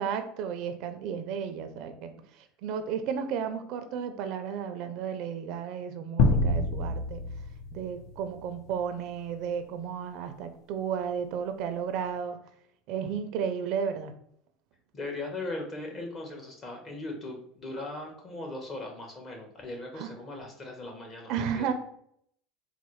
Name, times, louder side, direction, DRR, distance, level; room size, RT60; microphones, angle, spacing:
voice 1, 0.0-7.2 7.7-12.4 12.9-14.1 20.0-20.1 21.3-21.7, right 7 dB, 65° right, 8 dB, 0.4 m, -33 dB
sound 1, 6.2-8.8, left 2 dB, 60° left, 0.5 m, -27 dB
voice 2, 14.9-21.7, left 2 dB, 35° left, 1 dB, 1.0 m, -39 dB
4.1 x 2.0 x 3.0 m, 0.68 s
supercardioid pair, 105°, 0 cm